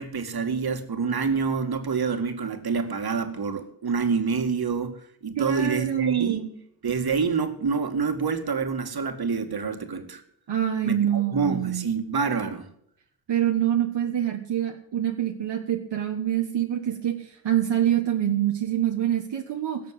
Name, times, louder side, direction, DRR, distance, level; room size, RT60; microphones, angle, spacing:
voice 1, 0.0-6.4 6.8-10.2 10.8-12.7, right 5 dB, 60° right, 2.2 m, -27 dB
voice 2, 5.4-6.5 10.5-11.8 13.3-19.8, right 10 dB, 80° right, 1.5 m, -25 dB
18.0 x 6.8 x 7.9 m
cardioid pair, 60°, 42 cm